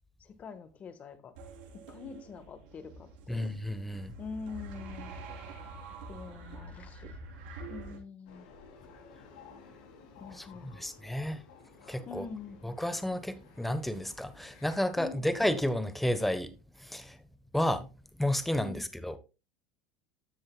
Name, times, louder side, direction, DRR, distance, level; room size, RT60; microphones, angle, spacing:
voice 1, 0.2-1.3 1.9-3.4 4.2-5.1 6.1-7.2 7.7-8.5 10.2-10.8 12.1-12.6 15.0-15.3 18.6-18.9, left 5 dB, 35° left, 1.5 m, -44 dB
sound 1, 1.4-8.0, right 3 dB, 80° right, 4.0 m, -46 dB
voice 2, 3.3-4.1 10.4-11.4 11.9-12.2 12.6-16.5 16.8-17.2 17.5-17.9 18.2-19.2, left 1 dB, 5° left, 1.1 m, -31 dB
sound 2, 8.3-14.8, left 5 dB, 80° left, 3.0 m, -55 dB
12.5 x 7.6 x 2.3 m
supercardioid pair, 105°, 4 cm